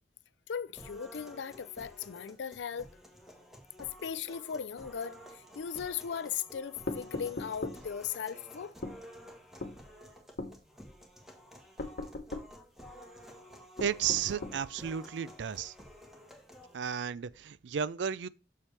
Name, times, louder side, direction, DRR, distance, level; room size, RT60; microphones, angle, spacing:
voice 1, 0.5-2.9 3.8-8.7, left 7 dB, 85° left, 0.5 m, -38 dB
sound 1, 0.7-16.7, equal, ahead, 1.5 m, -52 dB
sound 2, 6.9-7.8 8.8-9.0 9.6-9.8 10.4-10.6 11.8-12.5 13.8-14.6, left 2 dB, 55° left, 1.0 m, -38 dB
voice 2, 13.8-15.7 16.7-18.3, right 8 dB, 85° right, 0.4 m, -33 dB
7.2 x 6.7 x 3.3 m
head